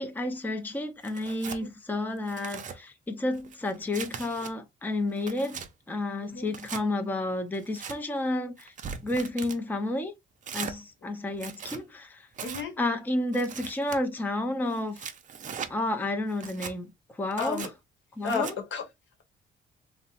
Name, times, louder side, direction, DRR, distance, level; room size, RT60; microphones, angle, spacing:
voice 1, 0.0-5.6 5.9-8.7 9.0-10.1 10.5-12.3 12.8-15.1 15.7-17.7 18.1-18.6, left 1 dB, 10° left, 0.5 m, -31 dB
Tearing, 1.0-1.6 2.2-2.8 3.3-4.5 5.0-5.7 6.5-6.8 7.5-8.0 8.6-9.6 10.4-10.8 11.3-11.8 12.3-12.7 13.3-14.0 14.7-15.7 16.3-16.7 17.3-17.7 18.3-18.5, right 6 dB, 40° right, 0.5 m, -40 dB
voice 2, 12.4-12.8 15.6-15.7 17.4-17.7 18.2-18.8, left 5 dB, 70° left, 1.0 m, -33 dB
2.7 x 2.0 x 2.7 m
cardioid pair, 90°, 20 cm